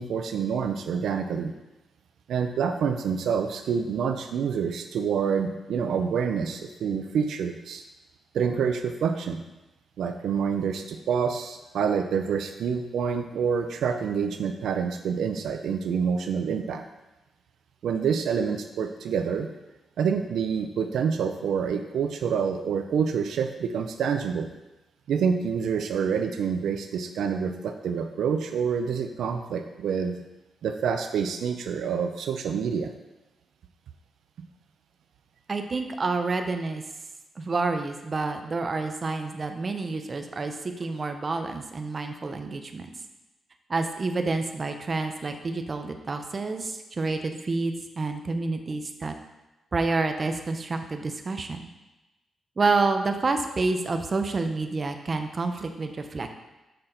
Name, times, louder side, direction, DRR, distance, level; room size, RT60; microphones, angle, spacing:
voice 1, 0.0-1.5 2.3-7.8 8.3-9.4 10.0-16.8 17.8-19.5 20.0-24.5 25.1-30.1 30.6-32.9 34.4-34.5, right 6 dB, 80° right, 6 dB, 0.5 m, -27 dB
voice 2, 35.5-36.8 37.4-42.9 43.7-49.1 49.7-51.6 52.6-56.3, right 3 dB, 35° right, 6 dB, 0.6 m, -28 dB
6.6 x 5.8 x 3.9 m, 1.0 s
cardioid pair, 115°, 0 cm